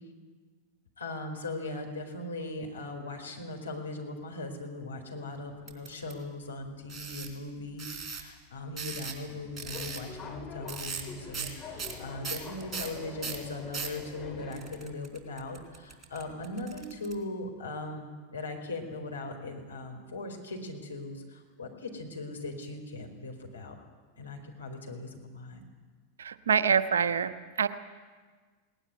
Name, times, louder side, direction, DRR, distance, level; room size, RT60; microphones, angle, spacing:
voice 1, 1.0-23.8 24.2-25.6, left 2 dB, 75° left, 2 dB, 4.5 m, -39 dB
sound 1, 5.7-6.1 6.9-7.3 7.8-8.2 8.8-9.3 9.6-10.0 10.7-11.1 11.3-11.5 11.8-14.0 14.5-17.1, right 5 dB, 20° right, 3.9 m, -38 dB
Subway metro underground, 9.3-14.9, left 4 dB, 20° left, 3.8 m, -45 dB
voice 2, 26.2-27.7, right 7 dB, 65° right, 12 dB, 1.1 m, -26 dB
20.5 x 19.0 x 9.7 m, 1.5 s
figure-of-eight pair, 90°, 0 cm